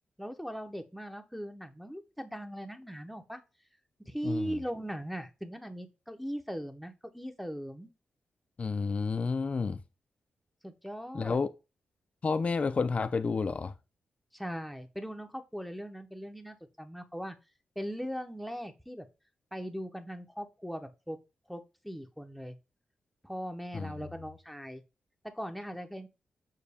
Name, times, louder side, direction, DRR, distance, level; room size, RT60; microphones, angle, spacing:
voice 1, 0.2-3.4 4.1-7.9 10.6-11.4 14.3-17.4 17.8-19.1 19.5-21.2 21.5-22.6 23.2-24.8 25.2-26.1, equal, ahead, 0.8 m, -39 dB
voice 2, 4.2-4.6 8.6-9.8 11.1-11.5 12.2-13.7 23.7-23.9, left 4 dB, 45° left, 0.4 m, -30 dB
6.4 x 2.2 x 3.4 m
cardioid pair, 60°, 3 cm